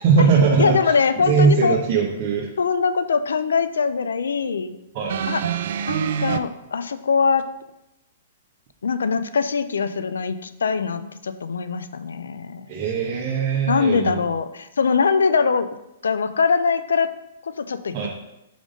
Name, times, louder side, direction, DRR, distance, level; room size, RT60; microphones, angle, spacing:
voice 1, 0.0-0.8 1.2-2.5 4.9-5.2 12.7-14.2 17.9-18.1, right 5 dB, 40° right, -3 dB, 1.1 m, -19 dB
voice 2, 0.6-1.8 2.6-4.8 5.3-5.4 5.9-7.4 8.8-12.9 13.7-15.7 16.0-17.1 17.4-18.1, left 5 dB, 85° left, 12 dB, 0.4 m, -22 dB
sound 1, 5.1-6.4 7.4-7.5, right 8 dB, 65° right, 0.4 m, -25 dB
5.1 x 3.8 x 5.1 m, 0.90 s
hypercardioid pair, 135°, 0 cm